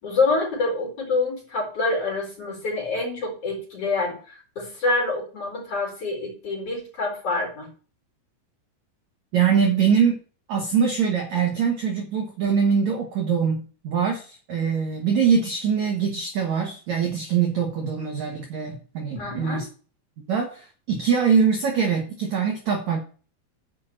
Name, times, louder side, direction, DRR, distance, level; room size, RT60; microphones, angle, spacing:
voice 1, 0.0-7.7 19.2-19.6, left 3 dB, 35° left, -2 dB, 4.9 m, -26 dB
voice 2, 9.3-10.2 10.5-19.7 20.3-23.0, right 6 dB, 65° right, 2 dB, 1.8 m, -23 dB
8.5 x 5.5 x 7.7 m, 0.39 s
omnidirectional pair, 5.3 m